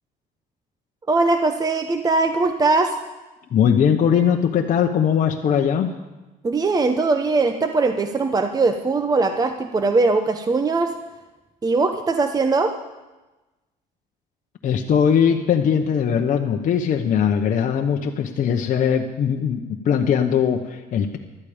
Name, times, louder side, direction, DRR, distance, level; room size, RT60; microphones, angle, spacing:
voice 1, 1.1-3.0 6.4-10.9 11.6-12.7, right 3 dB, 20° right, 7 dB, 0.8 m, -20 dB
voice 2, 3.5-5.9 14.6-19.6 19.8-21.2, left 8 dB, 50° left, 3 dB, 0.9 m, -20 dB
16.0 x 12.0 x 5.1 m, 1.1 s
cardioid pair, 110°, 17 cm